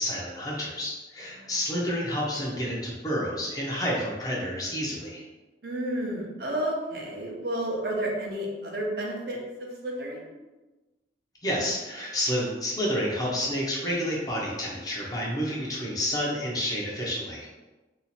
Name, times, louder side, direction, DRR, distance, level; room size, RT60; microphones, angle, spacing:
voice 1, 0.0-5.2 11.4-17.5, equal, 20° left, -4 dB, 0.7 m, -29 dB
voice 2, 5.6-10.3, right 1 dB, 55° right, -2 dB, 0.7 m, -31 dB
2.8 x 2.4 x 4.2 m, 1.1 s
head